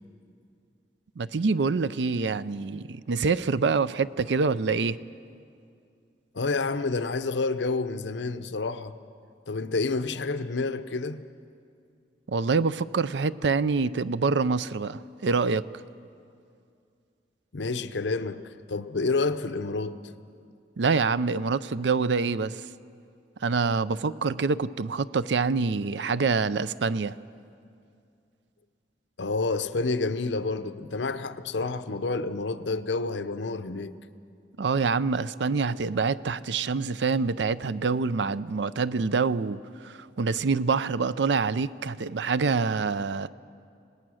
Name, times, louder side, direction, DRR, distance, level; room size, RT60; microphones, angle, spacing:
voice 1, 1.2-5.0 12.3-15.6 20.8-22.6 23.4-27.2 34.6-43.3, right 4 dB, 75° right, 0.5 m, -26 dB
voice 2, 6.3-8.9 9.5-11.2 17.5-20.0 29.2-33.9, left 3 dB, 85° left, 0.7 m, -29 dB
27.0 x 18.5 x 6.3 m
head